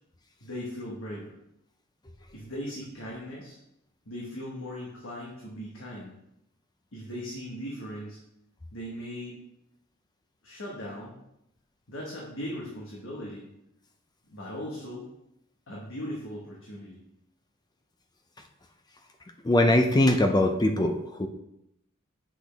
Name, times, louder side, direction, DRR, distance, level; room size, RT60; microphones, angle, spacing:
voice 1, 0.4-1.4 2.3-3.6 4.0-6.1 6.9-8.2 8.7-9.4 10.4-11.1 11.9-13.4 14.3-15.1 15.7-17.0, equal, 65° left, -4 dB, 1.5 m, -38 dB
voice 2, 19.4-21.3, left 1 dB, 20° left, 5 dB, 0.5 m, -22 dB
7.8 x 6.2 x 3.5 m, 0.81 s
head